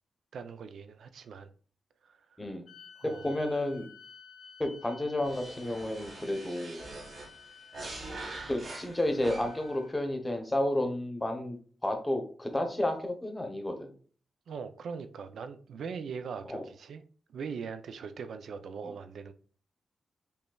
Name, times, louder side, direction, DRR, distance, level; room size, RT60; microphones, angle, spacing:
voice 1, 0.3-1.5 2.0-2.4 3.0-3.3 14.5-17.0 17.3-19.3, right 6 dB, 80° right, 0.4 m, -41 dB
sound 1, 2.7-10.2, left 6 dB, 85° left, 0.9 m, -54 dB
voice 2, 3.2-3.9 4.6-6.8 8.3-11.6 11.8-13.9 16.5-16.6, left 1 dB, 10° left, 0.8 m, -31 dB
sound 2, 5.2-9.8, right 2 dB, 50° right, 1.5 m, -44 dB
5.3 x 3.3 x 2.3 m
wide cardioid pair, 145°, 0 cm